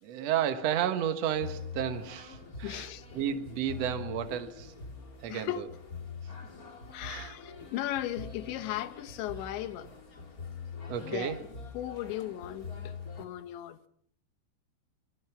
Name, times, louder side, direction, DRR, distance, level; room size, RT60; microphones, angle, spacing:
voice 1, 0.0-2.9 3.1-4.7 5.2-5.5 7.0-7.3 10.9-11.4, right 9 dB, 70° right, 1.5 m, -32 dB
sound 1, 1.3-13.3, left 4 dB, 30° left, 1.7 m, -44 dB
voice 2, 2.6-3.1 5.3-5.7 6.9-9.9 11.0-11.5 11.7-13.9, left 13 dB, 80° left, 3.4 m, -37 dB
25.0 x 23.0 x 6.0 m
omnidirectional pair, 5.2 m